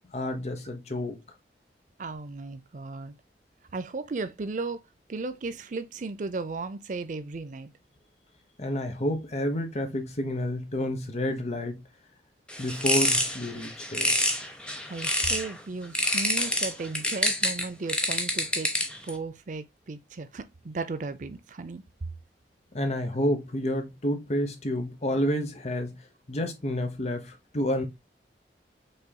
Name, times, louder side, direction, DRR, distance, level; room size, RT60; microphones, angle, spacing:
voice 1, 0.1-1.2 8.6-11.8 12.6-14.1 22.7-26.0 26.3-27.8, left 1 dB, 40° left, 1.0 m, -29 dB
voice 2, 2.0-3.1 3.7-4.8 5.1-7.7 14.9-18.7 19.0-21.8, right 3 dB, 45° right, 0.5 m, -35 dB
sound 1, 12.5-15.5 15.9-19.1, left 1 dB, 5° left, 0.8 m, -27 dB
5.5 x 4.0 x 2.2 m
head